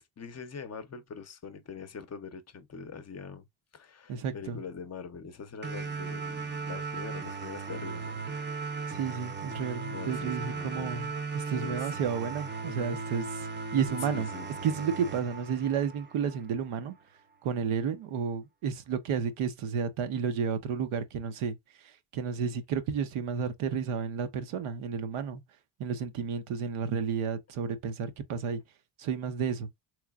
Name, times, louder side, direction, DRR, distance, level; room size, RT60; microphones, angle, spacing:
voice 1, 0.0-3.4 3.7-8.2 9.9-11.0 11.5-11.9 14.0-14.5, left 5 dB, 35° left, 0.6 m, -43 dB
voice 2, 4.1-4.6 8.9-13.5 13.7-14.3 14.6-16.9 17.4-21.6 21.8-25.4 25.8-28.6 29.0-29.7, right 6 dB, 85° right, 0.8 m, -32 dB
sound 1, 5.6-16.6, right 4 dB, 25° right, 0.6 m, -37 dB
3.8 x 3.1 x 2.3 m
cardioid pair, 110°, 48 cm